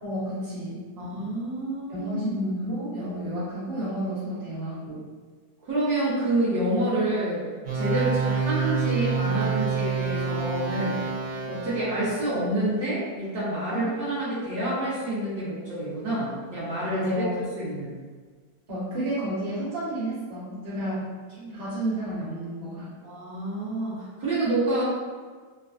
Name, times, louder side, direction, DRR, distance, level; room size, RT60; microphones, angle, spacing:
voice 1, 0.0-0.8 1.9-5.0 13.7-13.9 16.9-17.3 18.7-22.9, right 1 dB, 40° right, -9 dB, 1.0 m, -31 dB
voice 2, 1.0-2.3 5.6-7.4 7.7-11.0 11.5-17.1 17.6-17.9 20.8-20.9 21.4-21.6 23.0-24.8, right 1 dB, 65° right, -10 dB, 1.2 m, -28 dB
sound 1, 7.7-12.1, right 5 dB, 85° right, 1.4 m, -27 dB
3.2 x 2.1 x 2.4 m, 1.5 s
omnidirectional pair, 2.0 m